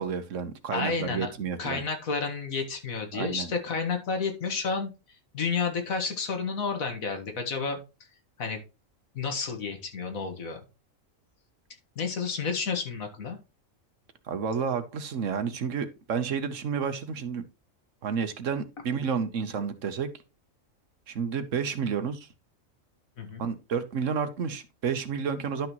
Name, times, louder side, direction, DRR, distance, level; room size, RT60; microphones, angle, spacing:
voice 1, 0.0-1.8 3.1-3.5 14.3-17.4 18.0-20.1 21.1-22.3 23.4-25.7, right 6 dB, 65° right, 1.3 m, -30 dB
voice 2, 0.7-1.3 1.6-7.8 8.4-8.6 9.1-10.6 12.0-13.4 23.2-23.5, left 5 dB, 85° left, 2.0 m, -31 dB
11.5 x 6.0 x 3.0 m
omnidirectional pair, 1.4 m